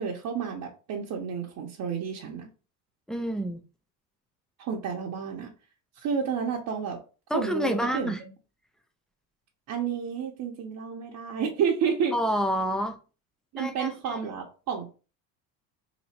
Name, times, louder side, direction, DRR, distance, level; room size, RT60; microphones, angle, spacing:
voice 1, 0.0-2.5 4.6-5.5 6.0-7.0 7.3-8.1 9.7-12.2 13.5-14.9, right 7 dB, 45° right, 0.8 m, -30 dB
voice 2, 3.1-3.6 7.3-8.2 12.1-13.0 13.6-14.2, equal, ahead, 0.4 m, -28 dB
2.9 x 2.6 x 4.2 m
supercardioid pair, 95°, 46 cm